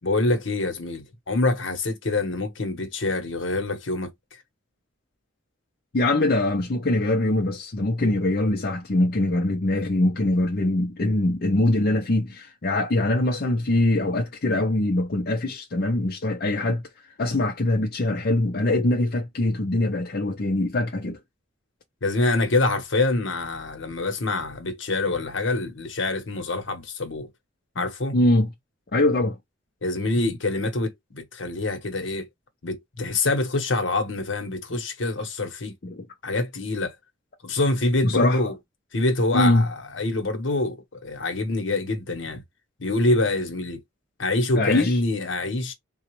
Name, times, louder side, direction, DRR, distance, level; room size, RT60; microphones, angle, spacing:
voice 1, 0.0-4.1 22.0-27.3 27.8-28.1 29.8-32.3 32.6-35.7 36.2-36.9 37.4-38.5 38.9-42.4 42.8-43.8 44.2-45.7, left 2 dB, 70° left, 1.0 m, -25 dB
voice 2, 5.9-16.8 17.2-21.2 28.1-28.5 28.9-29.4 35.8-36.1 38.0-38.5 39.3-39.7 44.5-45.0, left 1 dB, 50° left, 0.6 m, -23 dB
3.7 x 2.3 x 3.0 m
head